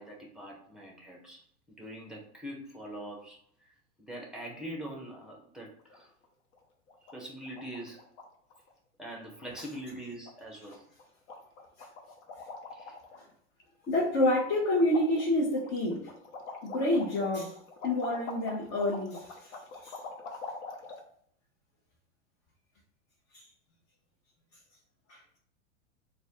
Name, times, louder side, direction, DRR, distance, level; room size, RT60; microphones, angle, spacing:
voice 1, 0.0-1.4 1.8-3.4 4.0-6.1 7.1-8.0 9.0-10.8 12.7-13.0, right 1 dB, ahead, 0 dB, 0.7 m, -43 dB
sound 1, 5.8-6.3 6.5-6.6 6.9-7.2 7.4-8.3 8.5-8.7 9.0-9.1 9.4-9.9 10.3-10.4 10.7-11.0 11.3-13.2 13.6-14.4 14.7-21.0, left 3 dB, 60° left, 0.9 m, -44 dB
voice 2, 13.9-16.1 16.6-17.6 17.8-19.5 19.8-20.0 23.3-23.4 25.1-25.2, left 1 dB, 35° left, -3 dB, 0.9 m, -28 dB
3.9 x 2.3 x 3.6 m, 0.65 s
hypercardioid pair, 115°, 41 cm